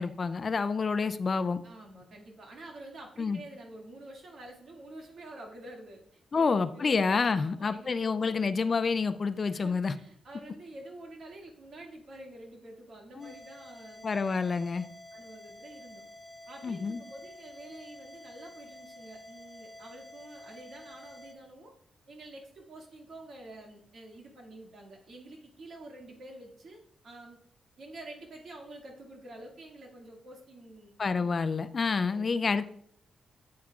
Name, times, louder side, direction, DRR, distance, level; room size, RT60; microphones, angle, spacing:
voice 1, 0.0-1.6 3.2-3.4 6.3-9.9 13.2-13.3 14.0-14.8 16.6-17.0 31.0-32.6, left 4 dB, 35° left, 12 dB, 0.3 m, -28 dB
voice 2, 1.6-6.9 7.3-8.3 9.5-14.4 15.1-16.0 16.5-21.7 22.1-27.4 27.8-30.9 31.2-31.3 32.1-32.4, right 1 dB, 60° right, 0 dB, 2.0 m, -48 dB
sound 1, 13.2-21.3, left 1 dB, 10° right, 1.2 m, -50 dB
8.5 x 8.5 x 2.4 m, 0.65 s
wide cardioid pair, 140°, 0 cm